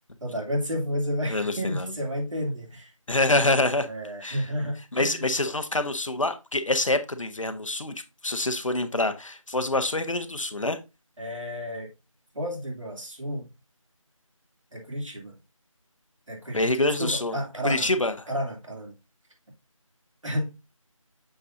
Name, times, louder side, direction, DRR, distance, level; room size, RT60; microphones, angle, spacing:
voice 1, 0.2-2.9 3.9-5.3 11.2-11.9 12.3-13.5 14.7-15.3 16.3-16.6 17.0-17.9 18.3-18.9 20.2-20.5, equal, 65° right, 2.8 m, -31 dB
voice 2, 1.3-1.9 3.1-3.9 4.2-4.4 4.9-7.9 8.2-10.8 16.5-17.4 17.6-18.1, left 2 dB, 65° left, 1.1 m, -26 dB
7.2 x 5.7 x 2.6 m
figure-of-eight pair, 180°, 18 cm